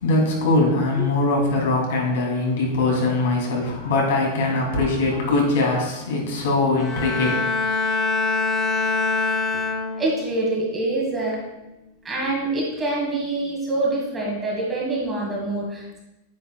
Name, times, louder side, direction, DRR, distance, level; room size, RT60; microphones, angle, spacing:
voice 1, 0.0-7.3, left 2 dB, 70° left, -1 dB, 2.8 m, -21 dB
Bowed string instrument, 6.8-10.3 10.8-11.2, left 4 dB, 10° left, 1.0 m, -24 dB
voice 2, 10.0-11.4 12.0-16.0, right 2 dB, 10° right, -4 dB, 1.5 m, -25 dB
9.4 x 9.1 x 2.3 m, 0.98 s
supercardioid pair, 180°, 0 cm